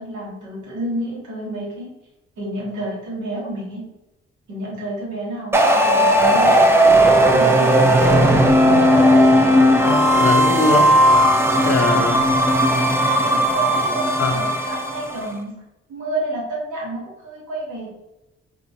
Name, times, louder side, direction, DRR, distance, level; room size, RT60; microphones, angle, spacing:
voice 1, 0.0-1.9 2.4-3.9 4.5-6.6 7.0-8.3 11.9-12.1 13.3-15.6 15.9-17.9, right 1 dB, 75° right, -4 dB, 1.1 m, -30 dB
sound 1, 5.5-15.2, equal, 10° right, 0.5 m, -15 dB
voice 2, 9.9-10.9 11.6-12.3 14.2-14.4, left 3 dB, 50° left, 5 dB, 0.5 m, -21 dB
2.9 x 2.1 x 2.6 m, 0.94 s
hypercardioid pair, 40°, 30 cm